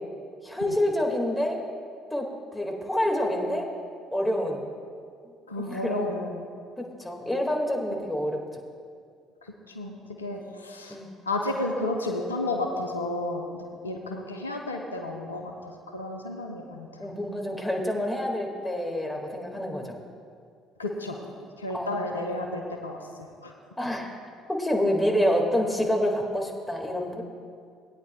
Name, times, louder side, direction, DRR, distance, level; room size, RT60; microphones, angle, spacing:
voice 1, 0.4-1.6 2.1-3.7 4.1-4.7 5.6-6.1 6.8-8.6 10.9-11.1 17.0-20.0 21.7-22.2 23.8-24.2 24.5-27.2, equal, 5° left, 0 dB, 2.0 m, -27 dB
voice 2, 5.5-6.4 9.7-11.0 11.3-16.9 20.8-21.2 21.6-23.5, left 2 dB, 90° left, 2 dB, 0.7 m, -32 dB
18.5 x 9.3 x 2.3 m, 2.2 s
figure-of-eight pair, 55°, 0 cm